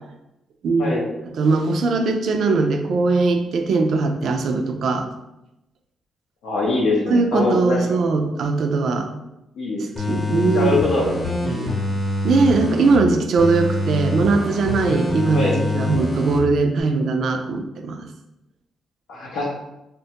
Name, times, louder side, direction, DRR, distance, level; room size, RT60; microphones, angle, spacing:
voice 1, 0.6-1.0 1.3-5.1 7.1-9.1 9.8-10.8 12.2-18.1, right 3 dB, 65° right, 5 dB, 0.3 m, -20 dB
voice 2, 6.4-7.8 9.6-9.8 10.5-11.1 11.4-11.7 15.3-15.6 19.1-19.5, left 2 dB, 80° left, -4 dB, 0.6 m, -22 dB
sound 1, 10.0-13.0 13.4-16.4 16.8-16.9, left 2 dB, 25° left, 0.8 m, -25 dB
3.0 x 2.2 x 2.8 m, 0.91 s
cardioid pair, 80°, 0 cm